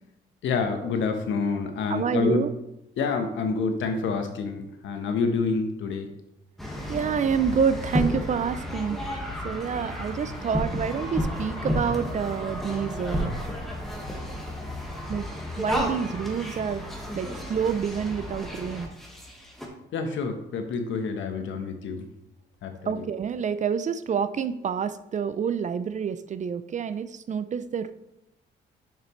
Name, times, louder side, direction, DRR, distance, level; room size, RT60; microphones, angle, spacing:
voice 1, 0.4-2.5 3.0-6.1 19.9-22.1 22.6-23.1, left 4 dB, 75° left, 6 dB, 1.0 m, -27 dB
voice 2, 1.9-2.5 6.9-9.0 9.4-13.3 15.1-15.2 15.6-16.8 17.1-18.9 22.9-27.9, right 7 dB, 40° right, 12 dB, 0.4 m, -28 dB
sound 1, 6.6-19.7, equal, ahead, 1.4 m, -32 dB
6.6 x 6.5 x 3.1 m, 0.86 s
cardioid pair, 90°, 20 cm